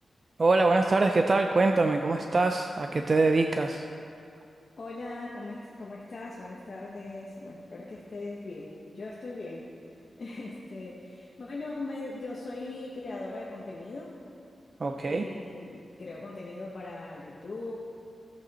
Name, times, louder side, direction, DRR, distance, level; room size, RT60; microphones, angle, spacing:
voice 1, 0.4-3.9 14.8-15.2, right 3 dB, 40° right, 5 dB, 0.4 m, -24 dB
voice 2, 4.8-9.7 10.2-14.2 15.0-17.8, left 2 dB, 50° left, -4 dB, 1.0 m, -40 dB
13.5 x 8.3 x 4.1 m, 2.6 s
wide cardioid pair, 140°, 0 cm